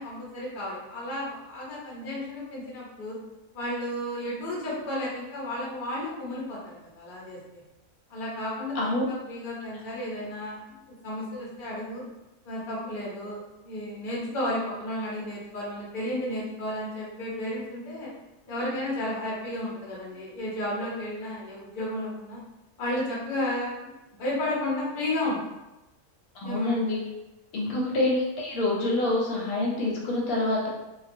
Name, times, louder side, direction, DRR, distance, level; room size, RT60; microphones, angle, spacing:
voice 1, 0.0-3.1 3.5-7.4 8.1-12.0 12.4-18.1 18.5-22.4 22.8-23.9 24.2-25.4 26.4-26.9, left 1 dB, 45° left, -6 dB, 0.8 m, -33 dB
voice 2, 26.4-27.0 27.5-30.7, left 2 dB, 85° left, -3 dB, 1.1 m, -26 dB
2.3 x 2.3 x 2.6 m, 0.99 s
omnidirectional pair, 1.4 m